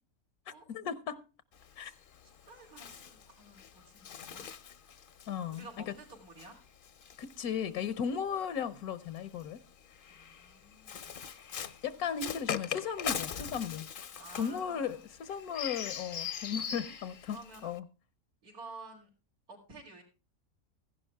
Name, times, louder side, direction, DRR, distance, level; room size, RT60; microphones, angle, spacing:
voice 1, 0.7-1.2 1.8-1.9 5.3-5.9 7.2-9.6 11.8-13.9 14.4-17.8, left 7 dB, 80° left, 1.3 m, -36 dB
Bird, 1.5-8.1 9.0-17.8, left 7 dB, 50° left, 0.7 m, -42 dB
voice 2, 2.2-4.5 5.5-6.6 10.1-11.1 14.2-15.0 17.3-17.7 18.4-19.1 19.5-20.0, right 3 dB, 85° right, 3.9 m, -51 dB
15.0 x 11.0 x 3.4 m
omnidirectional pair, 1.5 m